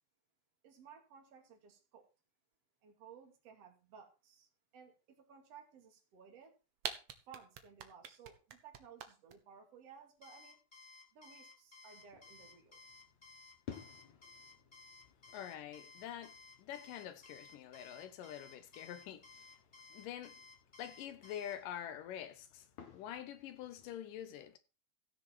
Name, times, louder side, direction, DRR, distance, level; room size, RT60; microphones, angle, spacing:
voice 1, 0.6-2.1 2.8-6.5 7.3-10.6 11.1-12.8, right 7 dB, 45° right, 3.3 m, -58 dB
sound 1, 6.4-6.5 6.8-9.3, right 8 dB, 65° right, 1.5 m, -42 dB
Alarm, 10.2-21.6, left 4 dB, 20° left, 1.2 m, -57 dB
sound 2, 12.0-24.0, left 8 dB, 55° left, 2.8 m, -58 dB
voice 2, 15.3-19.5 19.9-20.4 20.8-22.7 22.9-24.6, left 10 dB, 75° left, 2.3 m, -46 dB
15.5 x 6.7 x 4.5 m
omnidirectional pair, 4.1 m